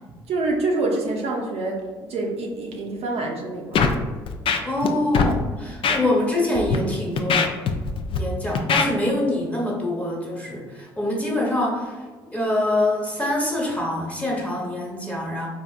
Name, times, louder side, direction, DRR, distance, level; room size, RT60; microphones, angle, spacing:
voice 1, 0.3-3.9, right 2 dB, 55° right, 0 dB, 0.6 m, -26 dB
Scratching (performance technique), 3.7-4.0 4.3-4.9 5.1-5.3 5.8-6.0 6.5-6.8 7.2-8.2 8.6-8.9, left 5 dB, 50° left, 0.4 m, -21 dB
voice 2, 4.6-7.5 8.1-12.0 12.3-15.5, left 1 dB, 10° left, -3 dB, 1.2 m, -25 dB
3.5 x 2.6 x 2.4 m, 1.4 s
hypercardioid pair, 55°, 12 cm